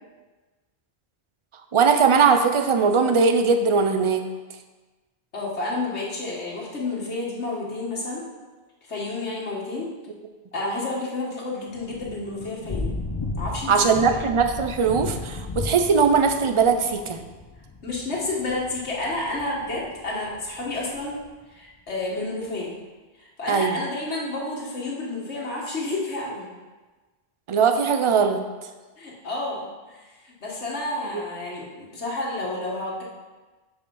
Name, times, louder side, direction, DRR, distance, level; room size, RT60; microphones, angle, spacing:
voice 1, 1.7-4.3 13.7-17.2 23.5-23.8 27.5-28.4, right 5 dB, 40° right, 7 dB, 0.5 m, -20 dB
voice 2, 5.3-8.2 8.9-9.9 10.5-12.9 13.4-14.1 17.8-21.2 21.5-22.7 23.2-26.5 29.0-33.0, left 2 dB, 90° left, -4 dB, 1.8 m, -30 dB
Thunder / Rain, 11.7-21.3, left 3 dB, 30° left, 0.5 m, -35 dB
6.3 x 5.6 x 5.3 m, 1.3 s
omnidirectional pair, 1.1 m